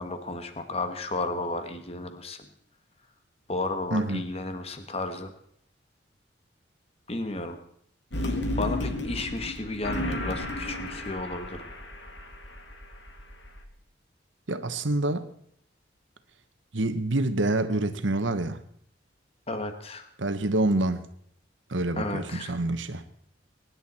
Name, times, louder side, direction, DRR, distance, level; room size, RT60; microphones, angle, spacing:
voice 1, 0.0-2.5 3.5-5.3 7.1-7.6 8.6-11.7 19.5-20.1 22.0-22.5, left 2 dB, 30° left, 1.3 m, -33 dB
voice 2, 3.9-4.3 14.5-15.3 16.7-18.6 20.2-21.1 21.7-23.0, right 2 dB, 80° right, 1.2 m, -27 dB
sound 1, 8.1-13.6, left 1 dB, 65° left, 1.9 m, -33 dB
23.0 x 10.5 x 4.3 m
head